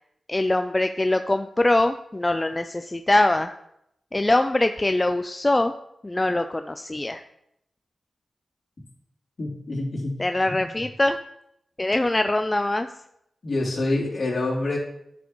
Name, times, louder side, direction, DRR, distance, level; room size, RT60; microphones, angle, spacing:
voice 1, 0.3-3.5 4.1-5.7 6.0-7.2 10.2-11.2 11.8-12.9, left 2 dB, 25° left, 8 dB, 0.4 m, -23 dB
voice 2, 9.4-10.2 10.5-10.7 13.4-14.8, left 2 dB, 60° left, -4 dB, 3.0 m, -27 dB
10.5 x 6.3 x 3.1 m, 0.78 s
cardioid pair, 60°, 0 cm